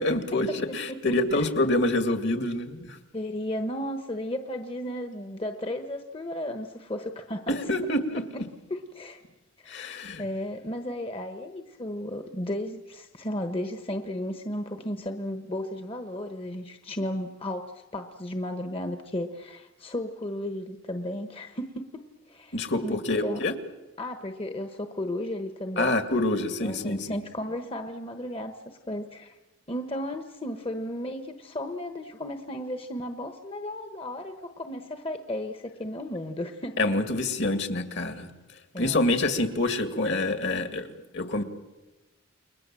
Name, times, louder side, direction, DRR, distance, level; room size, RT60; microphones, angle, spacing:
voice 1, 0.0-3.0 7.5-8.2 9.7-10.2 22.5-23.5 25.8-27.2 36.8-38.3 38.8-40.9 41.1-41.4, left 2 dB, 55° left, 8 dB, 2.2 m, -26 dB
voice 2, 0.9-1.5 3.1-7.9 8.3-8.4 8.7-9.2 9.6-23.4 24.0-26.0 26.6-29.4 29.7-37.0 38.7-39.1, left 1 dB, 25° left, 7 dB, 1.1 m, -34 dB
29.5 x 22.0 x 7.6 m, 1.1 s
head